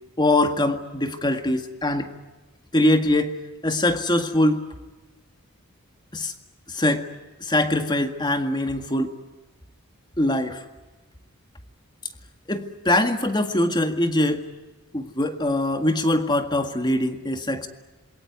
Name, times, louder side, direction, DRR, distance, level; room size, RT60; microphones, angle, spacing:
voice 1, 0.2-2.1 2.7-3.4 3.6-4.6 6.1-6.3 6.7-7.1 7.4-9.2 10.2-10.6 12.5-14.5 14.9-17.7, left 1 dB, 20° left, 7 dB, 1.9 m, -22 dB
27.5 x 22.5 x 9.5 m, 1.1 s
head